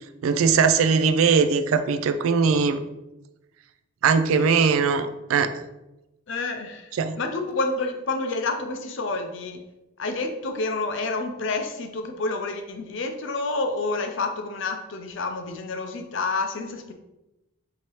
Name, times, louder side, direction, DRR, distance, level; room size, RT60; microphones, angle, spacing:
voice 1, 0.2-2.8 4.0-5.6 7.0-7.2, right 5 dB, 80° right, 10 dB, 0.3 m, -20 dB
voice 2, 6.3-9.6 10.0-16.9, left 3 dB, 60° left, 6 dB, 0.5 m, -29 dB
4.7 x 2.8 x 3.0 m, 0.95 s
head